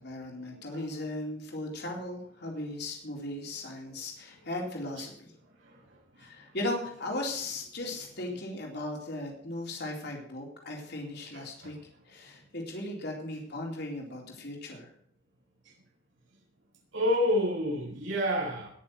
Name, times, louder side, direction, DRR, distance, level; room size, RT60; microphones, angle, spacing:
voice 1, 0.0-5.3 6.2-11.7 12.1-14.9, left 1 dB, 55° left, 0 dB, 4.0 m, -37 dB
voice 2, 11.3-11.7 16.9-18.7, left 1 dB, 75° right, -4 dB, 7.0 m, -29 dB
20.0 x 6.9 x 6.3 m, 0.62 s
head